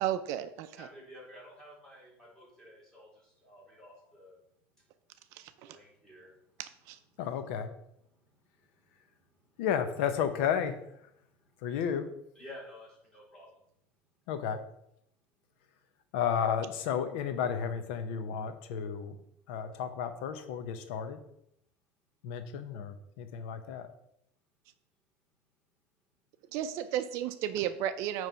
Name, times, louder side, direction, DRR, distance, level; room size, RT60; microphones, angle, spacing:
voice 1, 0.0-0.9 5.3-5.8 6.6-7.0 26.5-28.3, right 11 dB, 55° right, 10 dB, 0.4 m, -34 dB
voice 2, 0.7-4.3 5.6-6.3 8.3-8.4 12.3-13.5, left 1 dB, 5° left, -6 dB, 3.2 m, -51 dB
voice 3, 7.2-7.7 9.6-11.1 11.6-12.1 14.3-14.6 16.1-19.2 19.5-21.2 22.2-23.9, left 8 dB, 80° left, 10 dB, 0.7 m, -32 dB
9.1 x 3.2 x 5.6 m, 0.76 s
cardioid pair, 160°, 6 cm